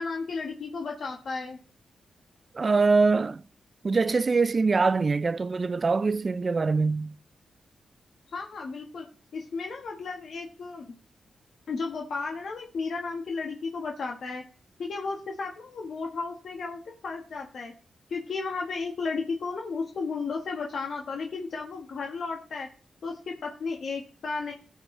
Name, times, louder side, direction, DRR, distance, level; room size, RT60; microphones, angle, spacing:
voice 1, 0.0-1.6 8.3-9.0 9.3-10.9 11.7-14.4 14.8-17.7 18.1-22.7 23.0-24.5, left 4 dB, 65° left, 1.4 m, -34 dB
voice 2, 2.5-3.4 3.8-7.1, right 4 dB, 40° right, 0.3 m, -23 dB
16.0 x 6.4 x 3.3 m
cardioid pair, 95°, 0 cm